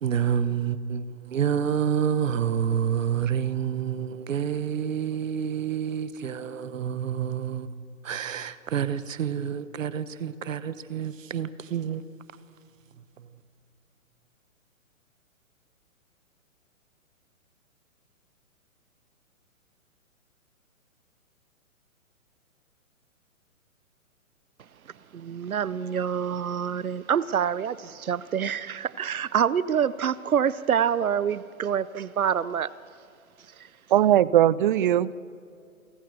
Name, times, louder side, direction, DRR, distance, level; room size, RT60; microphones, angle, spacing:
voice 1, 0.0-7.7 8.0-12.0 13.0-13.4, right 8 dB, 65° right, 1.2 m, -28 dB
voice 2, 25.1-32.7 33.6-33.7, right 8 dB, 80° right, 0.8 m, -26 dB
voice 3, 33.9-35.1, right 12 dB, 40° right, 0.5 m, -19 dB
28.5 x 15.5 x 6.9 m
hypercardioid pair, 130°, 42 cm